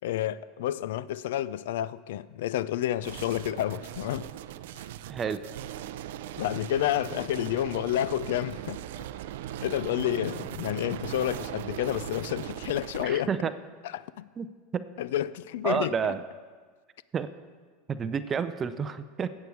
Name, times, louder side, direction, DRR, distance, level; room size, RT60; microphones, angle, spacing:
voice 1, 0.0-4.3 4.8-4.9 6.4-9.0 9.6-13.3 13.9-14.3 15.0-15.9, left 12 dB, 85° left, 0.3 m, -30 dB
sound 1, 3.0-13.1, right 12 dB, 85° right, 0.4 m, -39 dB
voice 2, 5.1-5.5 13.0-13.5 14.4-14.5 14.7-14.9 15.6-16.2 17.1-17.3 17.9-19.3, right 7 dB, 25° right, 0.4 m, -30 dB
15.0 x 8.4 x 4.7 m
supercardioid pair, 140°, 0 cm